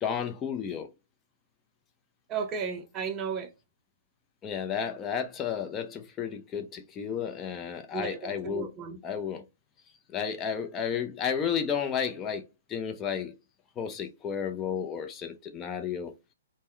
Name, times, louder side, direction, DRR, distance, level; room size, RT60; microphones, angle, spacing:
voice 1, 0.0-0.9 4.4-8.7 9.0-9.4 10.1-13.3 13.8-16.1, left 7 dB, 20° left, 0.5 m, -32 dB
voice 2, 2.3-3.5 7.9-9.0, right 6 dB, 25° right, 0.6 m, -34 dB
3.5 x 2.1 x 4.3 m
hypercardioid pair, 130°, 0 cm